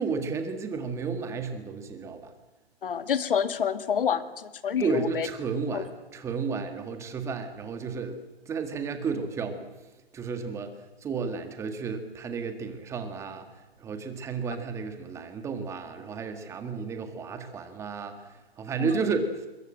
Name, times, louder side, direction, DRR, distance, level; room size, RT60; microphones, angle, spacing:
voice 1, 0.0-2.2 4.8-8.2 8.5-9.7 10.1-10.7 11.0-13.4 13.8-18.1 18.6-19.3, right 5 dB, 10° right, 7 dB, 1.8 m, -32 dB
voice 2, 2.8-5.3 5.7-5.8 18.8-19.0, left 7 dB, 60° left, 11 dB, 2.0 m, -28 dB
26.5 x 22.5 x 7.8 m, 1.1 s
hypercardioid pair, 155°, 31 cm